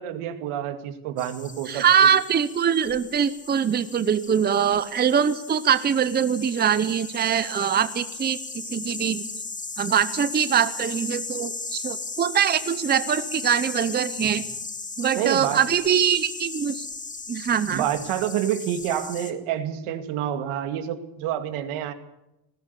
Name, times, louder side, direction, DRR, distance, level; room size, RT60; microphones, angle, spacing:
voice 1, 0.0-2.1 15.2-15.6 17.7-21.9, right 10 dB, 85° right, 9 dB, 2.4 m, -28 dB
sound 1, 1.2-19.3, left 3 dB, 15° left, 1.9 m, -36 dB
voice 2, 1.7-9.2 9.8-14.4 15.0-16.9 17.3-17.8, right 8 dB, 20° right, 13 dB, 0.8 m, -23 dB
19.5 x 17.0 x 8.3 m, 0.88 s
cardioid pair, 150°, 49 cm